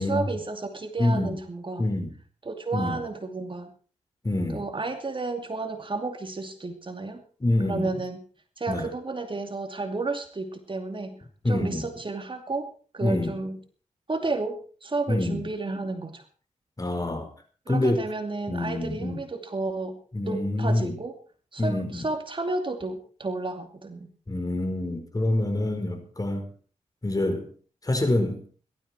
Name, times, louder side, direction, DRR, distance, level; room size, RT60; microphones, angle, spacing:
voice 1, 0.0-1.8 2.5-3.7 4.5-7.2 7.6-8.2 8.6-13.6 14.1-16.2 17.7-20.0 20.2-21.1 21.5-24.1, right 3 dB, 40° right, 6 dB, 2.6 m, -32 dB
voice 2, 1.0-1.3 1.8-2.1 2.7-3.0 4.2-4.6 7.4-7.9 8.7-8.9 11.4-11.8 13.0-13.4 15.1-15.5 16.8-17.3 17.7-18.0 18.5-19.2 20.1-20.9 21.6-22.1 24.3-26.5 27.0-27.5 27.8-28.4, left 1 dB, 25° left, 6 dB, 4.7 m, -26 dB
18.0 x 13.0 x 4.5 m, 0.41 s
cardioid pair, 55°, 13 cm